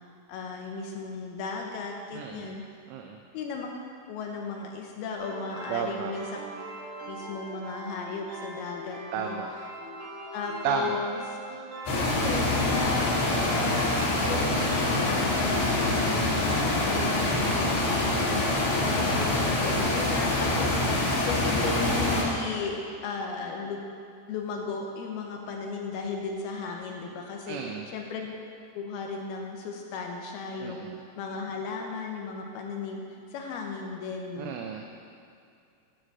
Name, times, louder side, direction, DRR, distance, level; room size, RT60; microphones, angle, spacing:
voice 1, 0.3-2.6 3.3-3.7 4.1-6.4 7.1-9.4 10.3-11.2 11.9-13.1 13.5-17.7 18.1-23.8 24.3-28.3 28.7-33.0 33.3-34.5, left 4 dB, 80° left, 1 dB, 2.3 m, -35 dB
voice 2, 2.1-2.5 2.9-3.2 5.7-6.1 9.1-9.5 10.6-11.0 16.9-17.5 27.5-27.9 30.6-31.0 34.4-34.9, right 6 dB, 85° right, 2 dB, 3.2 m, -33 dB
sound 1, 5.1-15.6, right 2 dB, 60° right, 1.7 m, -41 dB
sound 2, 11.9-22.2, left 2 dB, 60° left, 3.4 m, -25 dB
13.0 x 5.0 x 7.6 m, 2.4 s
omnidirectional pair, 5.5 m